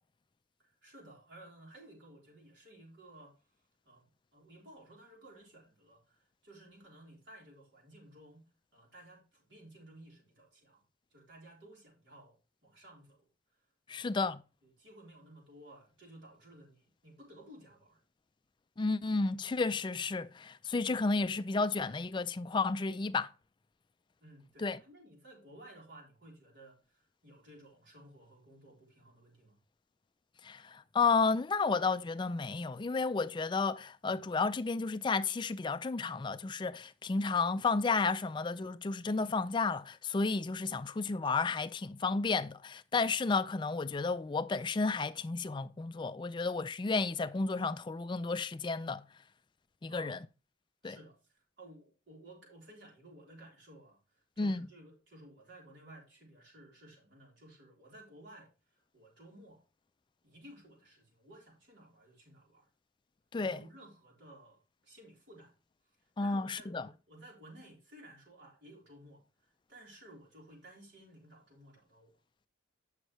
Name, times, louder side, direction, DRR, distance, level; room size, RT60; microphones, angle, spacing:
voice 1, 0.6-3.3 3.9-8.4 8.7-10.8 11.1-12.3 12.6-13.3 13.9-14.2 14.8-18.0 24.2-29.6 49.9-50.1 50.8-51.2 51.6-58.5 58.9-59.6 60.2-62.7 63.4-65.5 66.2-69.2 69.7-72.1, right 1 dB, 60° right, 3.6 m, -56 dB
voice 2, 13.9-14.4 18.8-23.3 24.6-24.8 30.4-49.0 49.8-50.3 50.8-51.0 54.4-54.7 63.3-63.6 66.2-66.9, left 4 dB, 25° left, 0.3 m, -32 dB
9.4 x 6.4 x 3.0 m
head